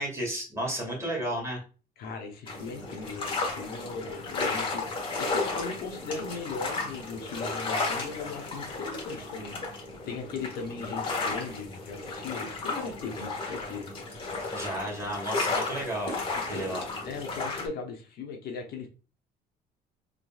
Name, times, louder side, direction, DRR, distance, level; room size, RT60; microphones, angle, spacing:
voice 1, 0.0-1.6 14.4-16.8, right 1 dB, 15° right, -2 dB, 2.1 m, -33 dB
voice 2, 2.0-9.5 10.1-13.9 16.5-18.9, left 4 dB, 65° left, 2 dB, 0.9 m, -38 dB
sound 1, 2.5-17.7, left 3 dB, 30° left, 1.3 m, -34 dB
3.8 x 3.5 x 2.3 m, 0.35 s
cardioid pair, 110°, 17 cm